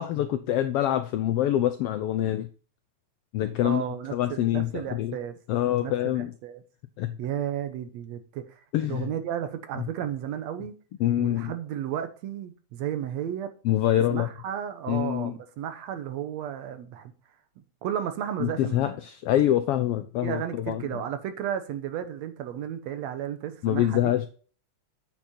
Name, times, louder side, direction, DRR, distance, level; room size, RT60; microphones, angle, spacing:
voice 1, 0.0-2.5 3.3-3.8 4.1-5.2 5.5-6.3 7.0-7.2 8.7-9.1 11.0-11.5 13.6-14.3 14.9-15.3 18.4-20.8 23.6-24.3, left 12 dB, 80° left, 1.3 m, -25 dB
voice 2, 3.6-5.4 5.8-6.6 7.2-8.6 8.9-10.8 11.2-13.5 13.9-17.1 17.8-18.9 20.2-24.1, right 10 dB, 75° right, 2.0 m, -33 dB
8.4 x 6.0 x 4.2 m
omnidirectional pair, 3.3 m